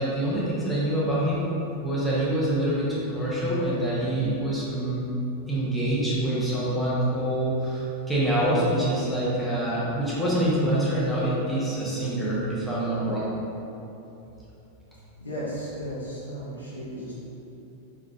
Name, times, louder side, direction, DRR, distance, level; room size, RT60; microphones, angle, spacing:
voice 1, 0.0-1.5 1.8-5.0 5.5-13.3, right 1 dB, ahead, -9 dB, 1.0 m, -26 dB
voice 2, 15.2-17.1, equal, 75° left, -9 dB, 1.2 m, -34 dB
4.9 x 3.7 x 2.2 m, 2.9 s
figure-of-eight pair, 90°, 0 cm